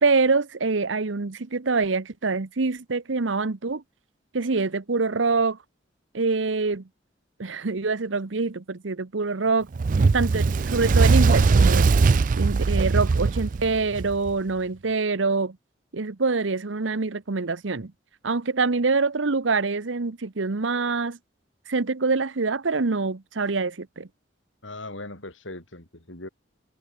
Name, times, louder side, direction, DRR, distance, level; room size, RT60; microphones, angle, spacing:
voice 1, 0.0-3.8 4.3-5.6 6.1-6.8 7.4-9.7 10.1-12.0 12.4-15.6 15.9-17.9 18.2-21.2 21.7-24.1, right 4 dB, 85° right, 1.0 m, -25 dB
Fire, 9.7-14.3, right 4 dB, 45° right, 0.4 m, -20 dB
voice 2, 24.6-26.3, left 2 dB, 90° left, 7.2 m, -39 dB
head